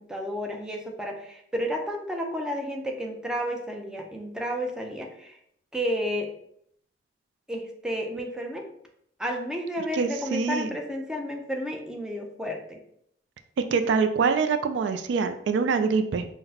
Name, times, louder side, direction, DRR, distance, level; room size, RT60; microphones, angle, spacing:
voice 1, 0.0-5.4 5.7-6.3 7.5-8.6 9.2-12.8, equal, 5° right, 1 dB, 0.5 m, -31 dB
voice 2, 9.9-10.7 13.7-16.3, right 5 dB, 70° right, 9 dB, 0.3 m, -24 dB
5.6 x 2.1 x 2.8 m, 0.71 s
head